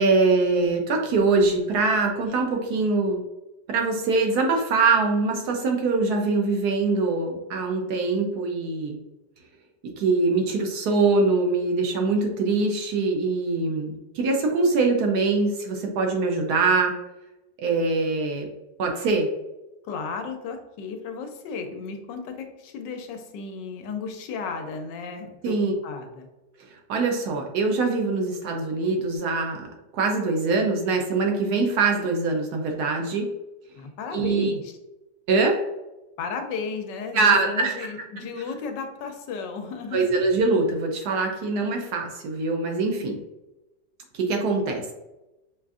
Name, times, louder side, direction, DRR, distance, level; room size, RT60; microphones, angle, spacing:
voice 1, 0.0-3.2 3.7-9.0 10.0-16.9 17.6-18.5 18.8-19.3 25.4-25.7 26.9-29.6 29.9-33.3 34.1-34.5 35.3-35.6 37.1-37.7 39.9-43.2 44.1-44.9, right 3 dB, 70° right, 2 dB, 1.0 m, -23 dB
voice 2, 19.9-25.6 25.8-26.3 33.8-34.7 36.2-40.1, left 5 dB, 80° left, 5 dB, 1.2 m, -34 dB
5.1 x 2.4 x 2.3 m, 0.98 s
omnidirectional pair, 1.9 m